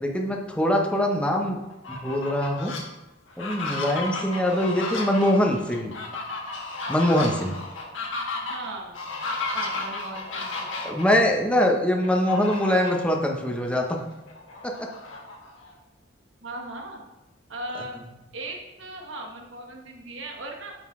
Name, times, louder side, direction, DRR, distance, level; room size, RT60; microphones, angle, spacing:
voice 1, 0.0-1.6 1.9-2.7 3.4-5.9 6.9-7.5 10.8-13.9 14.6-14.9, left 1 dB, 5° left, 1 dB, 0.8 m, -23 dB
Fowl, 1.7-2.8 3.3-11.0 12.0-13.1 13.5-13.6 14.0-15.7, left 3 dB, 80° left, 1.3 m, -33 dB
voice 2, 8.5-9.0 9.5-10.7 16.4-17.0 17.5-18.0 18.3-20.7, right 2 dB, 75° right, 1 dB, 1.2 m, -38 dB
8.9 x 4.0 x 3.6 m, 1.0 s
head